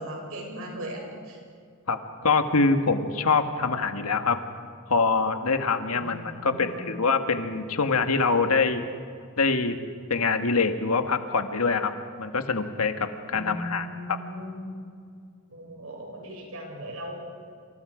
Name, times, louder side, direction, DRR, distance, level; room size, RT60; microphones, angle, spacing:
voice 1, 0.0-1.4 5.9-6.9 13.3-14.8 15.5-17.2, equal, 70° right, 0 dB, 7.3 m, -38 dB
voice 2, 1.9-4.4 4.9-8.8 9.4-9.8 10.1-11.9 12.2-14.2, left 4 dB, 80° left, 7 dB, 1.6 m, -24 dB
28.0 x 27.5 x 5.1 m, 2.2 s
head